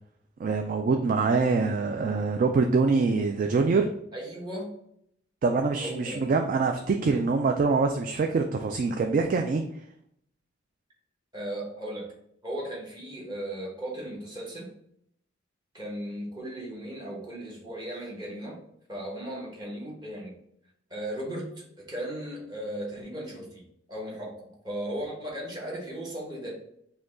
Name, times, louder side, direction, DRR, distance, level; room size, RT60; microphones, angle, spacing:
voice 1, 0.4-3.9 5.4-9.6, right 4 dB, 45° right, 4 dB, 0.3 m, -24 dB
voice 2, 4.1-4.7 5.8-6.2 11.3-12.1 12.4-14.7 15.7-18.6 18.9-20.4 20.9-23.6 23.9-26.5, right 1 dB, 20° right, -3 dB, 1.2 m, -36 dB
5.0 x 2.3 x 3.6 m, 0.71 s
head